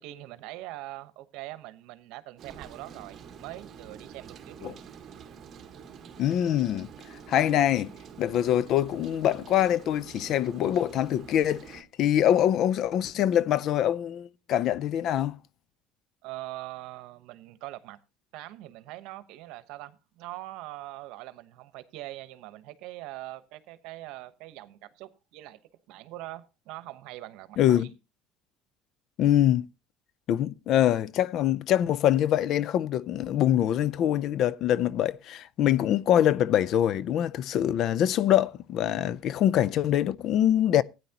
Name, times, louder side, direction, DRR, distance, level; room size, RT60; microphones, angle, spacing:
voice 1, 0.0-4.8 16.2-18.0 18.3-25.6 25.9-27.9, right 17 dB, 70° right, 1.0 m, -42 dB
Rain, 2.4-11.8, right 7 dB, 40° right, 1.4 m, -47 dB
voice 2, 6.2-6.9 7.3-7.9 8.2-15.4 27.6-27.9 29.2-29.7 30.3-40.8, left 11 dB, 50° left, 0.5 m, -24 dB
15.5 x 9.4 x 2.9 m
cardioid pair, 125°, 0 cm